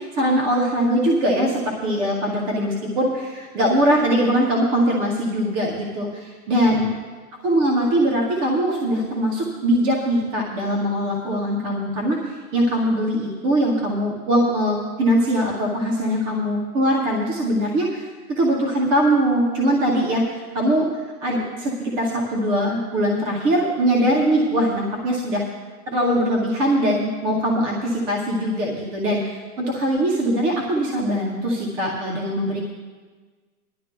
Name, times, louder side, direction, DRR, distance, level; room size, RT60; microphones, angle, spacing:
voice 1, 0.1-6.9 7.4-20.9 21.2-25.4 25.9-32.6, equal, 10° right, -1 dB, 0.5 m, -21 dB
21.0 x 11.0 x 2.2 m, 1.4 s
hypercardioid pair, 160°, 44 cm